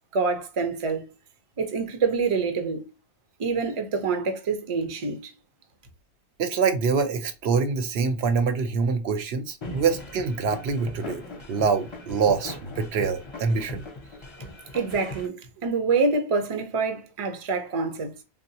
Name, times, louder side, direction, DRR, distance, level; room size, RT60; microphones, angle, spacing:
voice 1, 0.1-1.0 1.6-2.8 3.4-5.3 14.4-14.5 14.7-18.1, right 4 dB, 40° right, 0.5 m, -26 dB
voice 2, 6.4-11.2 11.5-13.8, right 5 dB, 75° right, 0.8 m, -25 dB
sound 1, 9.6-15.3, left 2 dB, 35° left, 0.5 m, -40 dB
3.7 x 2.1 x 2.7 m
omnidirectional pair, 1.1 m